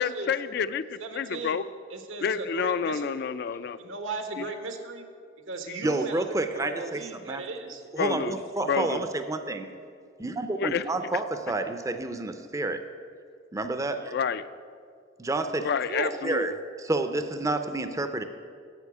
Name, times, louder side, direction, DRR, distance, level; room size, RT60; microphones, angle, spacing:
voice 1, 0.0-1.6 2.2-3.8 4.4-4.5 5.7-5.8 8.0-8.4 8.7-9.0 10.6-10.8 14.1-14.4 15.6-16.6, left 6 dB, 55° left, 14 dB, 0.4 m, -29 dB
voice 2, 1.0-1.6 1.9-3.3 3.8-5.0 5.5-6.3 6.5-7.8 8.8-8.9 15.9-16.1, right 3 dB, 80° right, 6 dB, 1.1 m, -36 dB
voice 3, 5.8-7.4 7.9-9.7 10.2-12.8 13.5-14.1 15.2-15.7 16.2-16.5 16.8-18.2, right 2 dB, 15° right, 8 dB, 0.5 m, -29 dB
8.2 x 7.0 x 8.5 m, 2.2 s
head